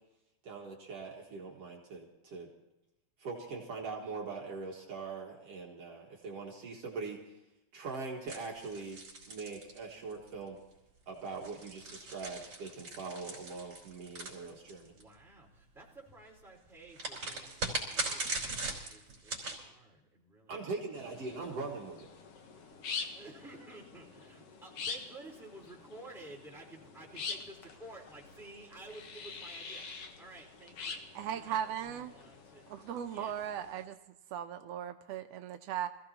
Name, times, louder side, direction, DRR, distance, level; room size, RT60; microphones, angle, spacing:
voice 1, 0.4-2.5 3.2-7.2 7.7-9.0 9.3-10.6 11.1-14.9 20.5-22.1, right 4 dB, 55° right, -2 dB, 2.6 m, -42 dB
sound 1, 8.3-10.3 11.2-15.0 16.9-19.6, right 3 dB, 35° right, 4.7 m, -39 dB
voice 2, 14.9-20.8 23.1-32.7 33.1-33.3, right 2 dB, ahead, -4 dB, 4.2 m, -53 dB
sound 2, 20.9-33.9, left 5 dB, 60° left, 1.9 m, -45 dB
voice 3, 31.1-32.1 32.7-34.0 34.3-35.9, right 9 dB, 85° right, 7 dB, 1.4 m, -37 dB
26.0 x 16.0 x 2.9 m, 0.94 s
omnidirectional pair, 3.6 m